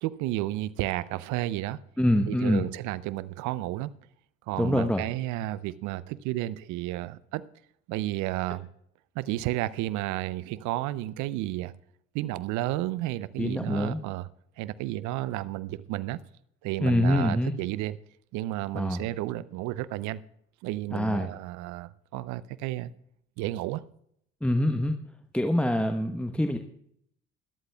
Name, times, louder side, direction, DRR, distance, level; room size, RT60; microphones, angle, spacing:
voice 1, 0.0-1.8 2.3-3.9 4.5-7.4 7.9-8.7 9.1-11.7 12.1-14.3 14.6-16.2 16.6-18.0 18.3-20.2 20.6-22.9 23.4-23.8, right 16 dB, 65° right, 0.7 m, -32 dB
voice 2, 2.0-2.6 4.6-5.0 13.4-14.0 16.8-17.5 18.7-19.0 20.9-21.3 24.4-24.9 25.3-26.6, left 1 dB, 5° left, 1.1 m, -25 dB
20.0 x 13.0 x 2.3 m
hypercardioid pair, 55°, 31 cm